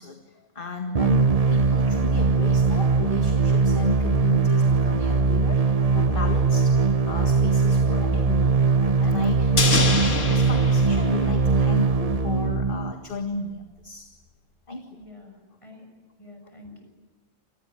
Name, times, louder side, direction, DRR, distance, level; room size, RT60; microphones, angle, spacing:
voice 1, 0.0-14.1 14.7-14.9, left 4 dB, 40° left, 4 dB, 2.0 m, -34 dB
sound 1, 0.9-12.9, right 4 dB, 30° right, 0.9 m, -21 dB
sound 2, 9.6-12.0 12.2-12.3, left 4 dB, 70° left, 2.4 m, -26 dB
voice 2, 14.9-15.9 16.2-16.8, left 2 dB, 25° left, 4 dB, 6.9 m, -47 dB
28.0 x 20.0 x 9.7 m, 1.2 s
omnidirectional pair, 1.4 m